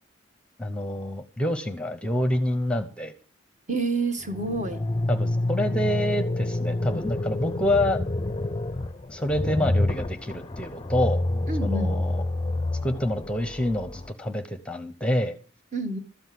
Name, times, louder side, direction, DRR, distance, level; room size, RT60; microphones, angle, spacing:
voice 1, 0.6-3.1 5.1-8.0 9.1-11.2 11.6-12.2 12.8-15.4, left 1 dB, 5° left, 0.9 m, -27 dB
voice 2, 3.7-4.8 11.5-12.0 15.7-16.0, right 3 dB, 40° right, 1.5 m, -28 dB
sound 1, 4.2-14.1, left 2 dB, 20° left, 0.5 m, -28 dB
13.0 x 7.9 x 7.7 m
head